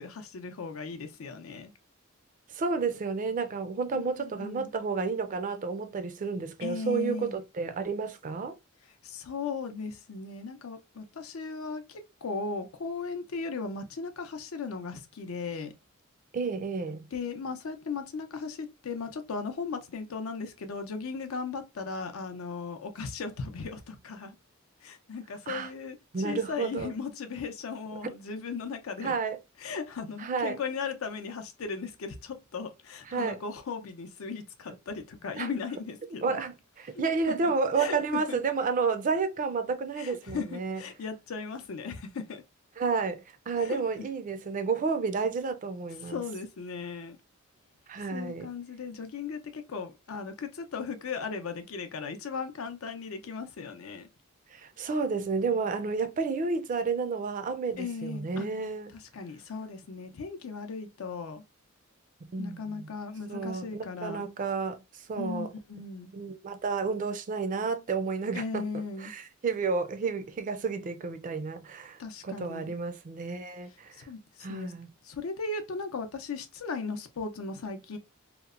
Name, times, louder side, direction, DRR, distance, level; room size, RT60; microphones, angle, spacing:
voice 1, 0.0-1.7 3.9-4.7 6.6-7.4 9.0-15.7 17.1-24.4 24.8-29.1 29.6-36.4 36.9-38.4 40.0-42.4 43.6-43.8 46.0-47.2 48.1-54.1 57.8-58.5 58.9-61.4 62.4-64.3 65.2-66.1 68.3-69.1 72.0-72.7 74.0-74.7 75.0-78.0, left 4 dB, 80° left, 0.5 m, -37 dB
voice 2, 2.5-8.5 16.3-17.0 25.5-25.7 26.1-26.9 29.0-29.4 30.2-30.6 33.1-33.4 35.4-35.5 36.2-40.8 42.8-46.2 47.9-48.5 54.5-58.9 62.2-62.9 63.3-64.8 65.1-65.5 66.1-68.7 69.0-74.1 74.4-74.9, right 4 dB, 40° right, 0.3 m, -31 dB
2.8 x 2.1 x 2.4 m
head